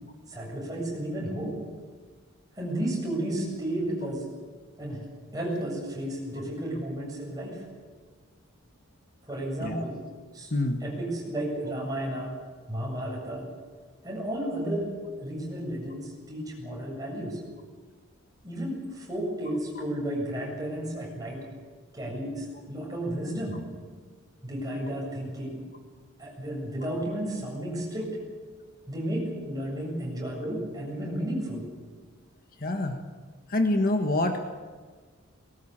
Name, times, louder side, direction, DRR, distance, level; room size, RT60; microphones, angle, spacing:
voice 1, 0.3-1.5 2.6-4.2 4.8-5.0 5.3-7.6 9.3-10.0 10.3-10.5 10.8-12.3 12.7-13.5 14.0-17.4 18.4-21.5 21.9-23.6 24.4-25.6 26.2-28.1 28.9-31.6, right 1 dB, 15° right, -2 dB, 7.7 m, -32 dB
voice 2, 10.5-10.8 32.6-33.0 33.5-34.5, left 2 dB, 45° left, 5 dB, 1.5 m, -26 dB
20.0 x 18.0 x 8.7 m, 1.5 s
head